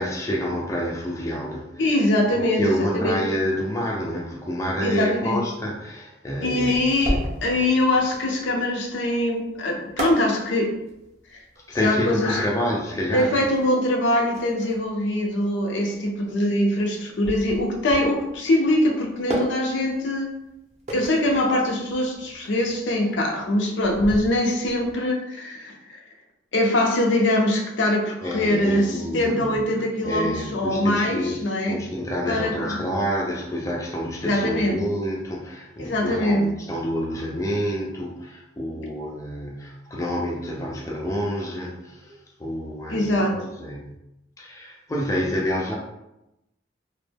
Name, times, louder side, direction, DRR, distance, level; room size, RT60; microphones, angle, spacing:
voice 1, 0.0-1.9 2.4-6.9 7.5-7.6 11.7-13.4 28.2-29.6 30.0-31.4 31.7-43.9 44.4-45.7, equal, 15° left, -2 dB, 0.3 m, -28 dB
voice 2, 1.8-2.6 2.9-3.2 4.8-5.4 6.4-10.7 11.8-12.5 13.1-20.3 20.9-26.0 26.5-31.8 32.3-32.8 34.2-34.8 35.8-36.5 42.9-43.3, left 1 dB, 80° left, 1 dB, 0.5 m, -23 dB
sound 1, 6.6-24.9, right 1 dB, 35° right, 0.5 m, -34 dB
2.1 x 2.0 x 3.2 m, 0.88 s
head